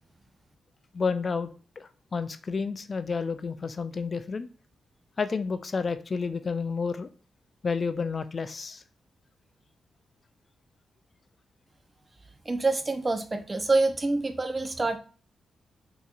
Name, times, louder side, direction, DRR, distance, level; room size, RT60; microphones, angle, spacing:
voice 1, 0.9-1.5 1.8-4.5 5.2-7.1 7.6-8.8, left 5 dB, 45° left, 11 dB, 0.3 m, -30 dB
voice 2, 12.5-15.0, right 3 dB, 25° right, 8 dB, 0.5 m, -26 dB
3.9 x 2.8 x 2.4 m, 0.37 s
cardioid pair, 80°, 0 cm